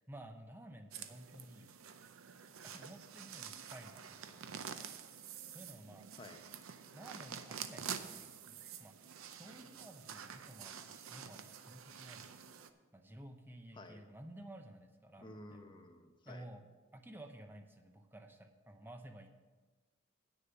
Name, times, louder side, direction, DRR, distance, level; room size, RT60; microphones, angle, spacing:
voice 1, 0.1-1.8 2.6-4.9 5.5-6.1 6.9-9.0 9.3-12.5 12.9-15.6 16.2-16.6 16.9-19.3, right 1 dB, 10° right, 5 dB, 0.7 m, -54 dB
sound 1, 0.9-12.7, right 7 dB, 80° right, 0.6 m, -48 dB
voice 2, 15.2-16.5, left 1 dB, 25° left, 4 dB, 0.9 m, -52 dB
9.3 x 6.7 x 7.0 m, 1.3 s
head